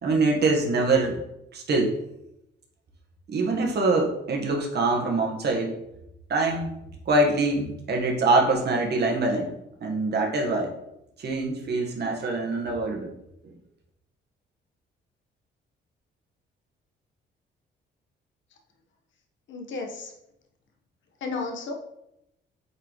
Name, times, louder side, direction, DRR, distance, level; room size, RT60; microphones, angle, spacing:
voice 1, 0.0-1.2 1.5-1.9 3.3-5.8 6.3-6.7 7.1-9.5 9.8-10.7 11.2-13.1, right 2 dB, 55° right, 1 dB, 1.6 m, -24 dB
voice 2, 19.5-20.1 21.2-21.7, left 3 dB, 70° left, 2 dB, 1.3 m, -33 dB
8.3 x 4.0 x 3.2 m, 0.83 s
cardioid pair, 90°, 20 cm